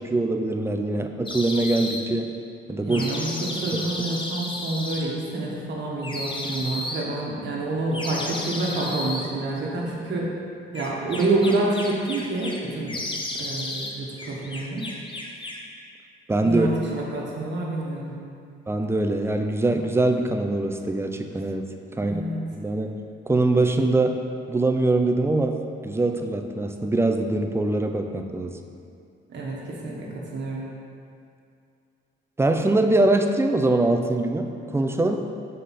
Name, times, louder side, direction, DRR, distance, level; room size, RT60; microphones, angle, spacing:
voice 1, 0.0-2.3 2.7-3.0 3.7-3.8 16.3-16.7 18.7-21.7 22.0-22.1 22.5-23.0 23.3-24.2 24.5-28.6 32.4-35.2, right 2 dB, 10° right, 5 dB, 0.5 m, -23 dB
sound 1, 1.3-2.0 2.9-5.0 6.0-7.0 7.9-9.3 10.7-12.6 12.9-13.9 14.2-15.7, left 2 dB, 25° left, 0.8 m, -33 dB
voice 2, 2.8-10.3 10.7-12.9 13.4-14.8 16.4-18.1 22.0-22.4 29.3-30.7, right 2 dB, 65° right, -3 dB, 1.3 m, -28 dB
5.5 x 5.1 x 4.2 m, 2.4 s
cardioid pair, 90°, 20 cm